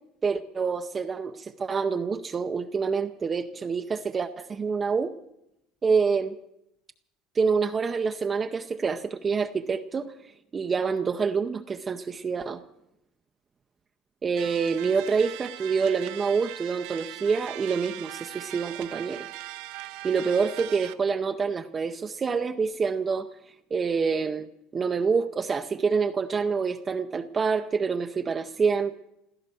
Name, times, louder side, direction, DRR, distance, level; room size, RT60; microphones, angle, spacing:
voice 1, 0.2-5.1 5.8-6.4 7.4-10.1 10.5-12.6 14.2-19.3 20.0-23.3 23.7-24.5 24.7-28.9, right 5 dB, 20° right, 6 dB, 0.6 m, -27 dB
sound 1, 14.4-20.9, right 17 dB, 75° right, 0.8 m, -40 dB
15.5 x 13.5 x 7.0 m, 0.83 s
cardioid pair, 145°, 0 cm